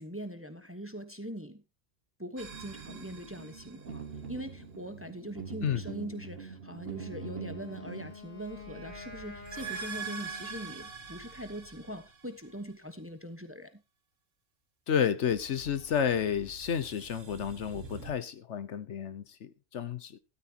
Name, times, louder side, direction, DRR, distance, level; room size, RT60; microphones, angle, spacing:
voice 1, 0.0-1.6 2.2-13.8, right 1 dB, 10° right, 1.0 m, -42 dB
sound 1, 2.4-4.3 8.2-12.7 15.2-18.1, right 5 dB, 85° right, 2.0 m, -45 dB
sound 2, 2.5-8.1, right 5 dB, 50° right, 1.5 m, -44 dB
Wind instrument woodwind instrument, 6.9-11.0, left 3 dB, 40° left, 3.8 m, -49 dB
voice 2, 14.9-20.2, left 8 dB, 65° left, 1.1 m, -31 dB
13.0 x 12.5 x 2.9 m
omnidirectional pair, 1.3 m